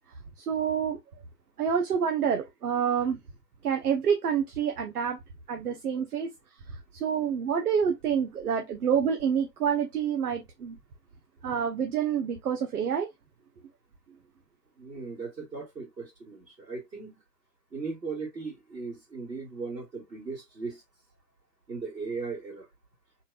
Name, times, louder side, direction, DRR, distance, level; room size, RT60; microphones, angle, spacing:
voice 1, 0.4-1.0 1.6-3.2 3.6-5.2 5.5-6.3 6.9-10.8 11.4-13.1, right 7 dB, 65° right, 0.9 m, -27 dB
voice 2, 14.8-17.2 17.7-20.8 21.7-22.7, right 4 dB, 85° right, 2.4 m, -37 dB
4.3 x 3.3 x 2.4 m
figure-of-eight pair, 105°, 49 cm